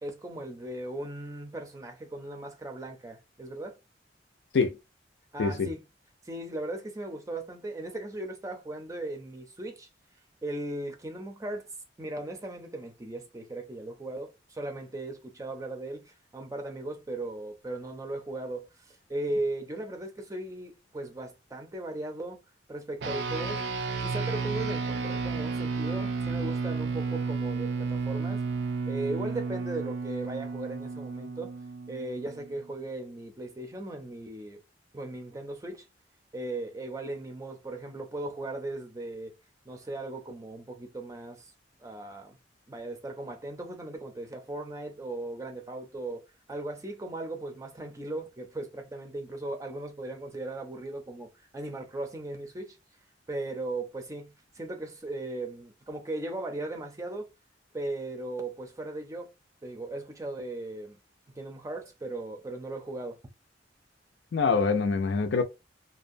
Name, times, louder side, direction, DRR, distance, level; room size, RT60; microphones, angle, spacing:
voice 1, 0.0-3.8 5.3-5.8 6.3-9.9 10.4-11.6 12.0-22.4 22.7-23.6 24.0-28.4 28.9-31.5 31.9-34.6 34.9-35.8 36.3-39.3 39.7-41.5 41.8-42.4 42.7-51.3 51.5-52.8 53.3-57.3 57.7-59.3 59.6-61.0 61.4-63.2, right 2 dB, 20° right, 0.5 m, -37 dB
sound 1, 23.0-32.6, right 4 dB, 70° right, 0.4 m, -32 dB
voice 2, 64.3-65.4, left 4 dB, 75° left, 0.5 m, -25 dB
2.5 x 2.1 x 2.6 m
head